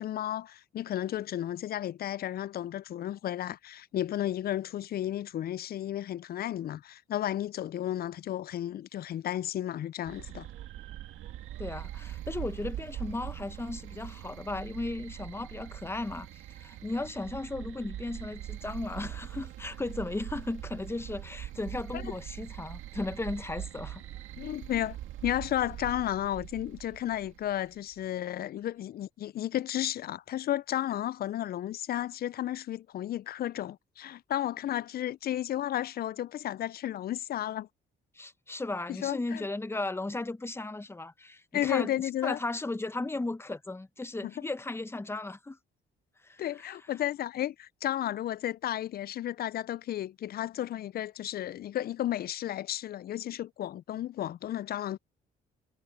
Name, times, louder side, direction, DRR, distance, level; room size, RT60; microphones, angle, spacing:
voice 1, 0.0-10.5 24.4-37.7 38.9-39.4 41.5-42.4 44.2-44.3 46.4-55.0, left 12 dB, 50° left, 0.4 m, -33 dB
sound 1, 10.0-28.0, right 12 dB, 85° right, 2.0 m, -42 dB
voice 2, 11.6-24.0 38.1-45.6 46.2-46.7, left 2 dB, 10° left, 0.8 m, -36 dB
cardioid pair, 90°, 20 cm